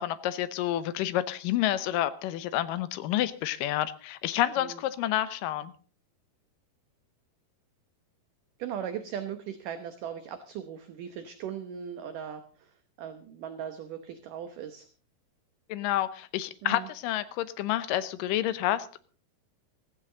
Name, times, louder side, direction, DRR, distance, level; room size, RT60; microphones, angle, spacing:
voice 1, 0.0-5.7 15.7-19.0, left 13 dB, 75° left, 13 dB, 2.1 m, -29 dB
voice 2, 8.6-12.7 13.0-14.9 16.6-16.9, right 9 dB, 70° right, 9 dB, 2.3 m, -38 dB
16.0 x 15.5 x 3.9 m, 0.39 s
omnidirectional pair, 4.7 m